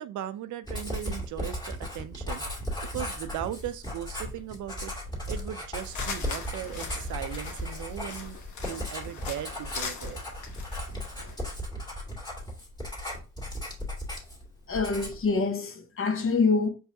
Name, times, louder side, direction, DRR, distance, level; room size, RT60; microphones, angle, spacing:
voice 1, 0.0-2.4 2.9-4.9 5.3-8.4 8.6-10.2, right 11 dB, 75° right, 0.5 m, -38 dB
Writing, 0.7-14.5 14.7-15.3, equal, 15° left, 1.9 m, -36 dB
sound 1, 5.8-11.5, left 5 dB, 75° left, 1.0 m, -41 dB
voice 2, 14.7-16.7, left 4 dB, 45° left, 0.9 m, -25 dB
4.6 x 3.3 x 2.7 m
cardioid pair, 90°, 30 cm